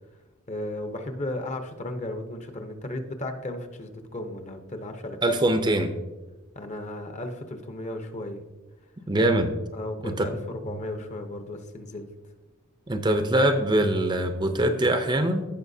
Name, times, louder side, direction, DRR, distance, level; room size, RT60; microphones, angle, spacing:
voice 1, 0.5-5.2 6.5-8.4 9.2-9.3 9.7-12.1, left 1 dB, 35° left, 7 dB, 0.8 m, -35 dB
voice 2, 5.2-5.9 9.1-9.5 10.0-10.3 12.9-15.4, right 1 dB, 20° right, 7 dB, 0.6 m, -23 dB
15.5 x 5.6 x 2.7 m, 1.2 s
head